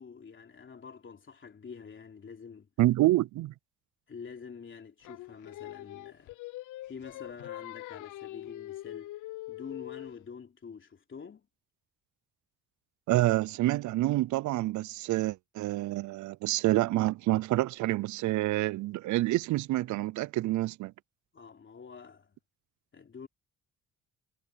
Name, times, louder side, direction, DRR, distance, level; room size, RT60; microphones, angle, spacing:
voice 1, 0.0-2.7 4.1-6.4 6.9-9.1 9.5-11.5 21.3-22.4 22.9-23.3, left 6 dB, 40° left, 3.5 m, -47 dB
voice 2, 2.8-3.5 13.1-20.9, right 17 dB, 70° right, 0.5 m, -27 dB
Singing, 5.0-10.2, left 16 dB, 80° left, 0.6 m, -43 dB
cardioid pair, 90°, 30 cm